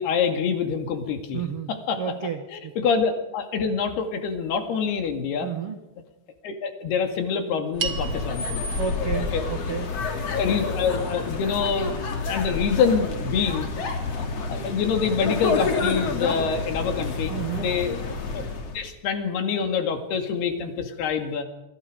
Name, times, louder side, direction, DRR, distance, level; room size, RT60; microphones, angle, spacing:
voice 1, 0.0-1.4 1.9-2.0 2.5-5.5 6.4-8.6 10.4-13.7 14.2-17.3 17.6-18.0 18.3-18.4 18.7-21.4, left 6 dB, 75° left, 6 dB, 4.3 m, -26 dB
voice 2, 1.3-1.7 2.0-2.7 5.4-5.8 8.8-10.0 17.3-17.7, right 8 dB, 65° right, 7 dB, 1.4 m, -31 dB
sound 1, 7.7-18.9, left 4 dB, 40° left, 3.2 m, -29 dB
sound 2, 7.8-12.3, right 7 dB, 40° right, 2.0 m, -39 dB
28.5 x 24.0 x 5.2 m, 0.99 s
omnidirectional pair, 4.7 m